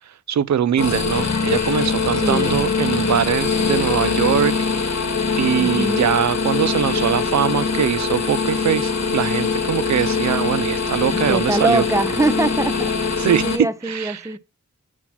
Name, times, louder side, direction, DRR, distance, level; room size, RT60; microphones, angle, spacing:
voice 1, 0.3-4.6 5.3-11.8 13.2-14.2, right 9 dB, 65° right, 0.5 m, -22 dB
sound 1, 0.8-13.6, left 5 dB, 65° left, 1.1 m, -23 dB
voice 2, 2.1-2.6 5.6-6.1 11.3-14.4, right 1 dB, 10° right, 0.7 m, -23 dB
sound 2, 3.4-13.4, left 1 dB, 20° left, 1.2 m, -30 dB
5.9 x 4.4 x 5.7 m
wide cardioid pair, 60°, 30 cm